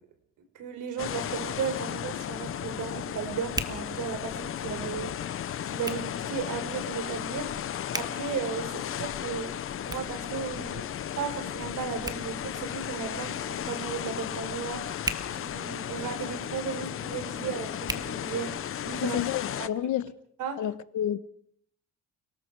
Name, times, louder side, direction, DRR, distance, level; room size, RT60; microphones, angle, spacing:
voice 1, 0.5-5.1 5.6-7.5 7.9-9.5 9.8-10.8 11.2-14.9 15.3-19.2 19.6-19.7 20.4-20.6, right 6 dB, 70° right, 4.5 m, -35 dB
sound 1, 1.0-19.7, left 10 dB, 45° left, 0.8 m, -35 dB
Hands, 1.3-18.9, right 2 dB, 10° right, 1.6 m, -43 dB
voice 2, 19.0-20.1 20.6-21.2, left 11 dB, 70° left, 1.3 m, -30 dB
30.0 x 19.0 x 4.8 m
cardioid pair, 155°, 31 cm